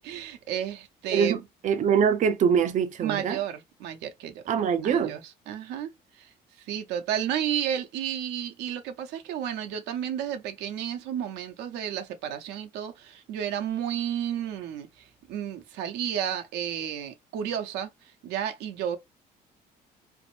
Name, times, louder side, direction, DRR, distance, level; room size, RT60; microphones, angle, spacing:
voice 1, 0.0-1.4 3.0-4.4 4.8-6.3 6.6-19.0, right 9 dB, 90° right, 0.7 m, -32 dB
voice 2, 1.1-3.4 4.5-5.2, right 7 dB, 45° right, 0.5 m, -24 dB
3.5 x 2.0 x 2.3 m
cardioid pair, 110°, 17 cm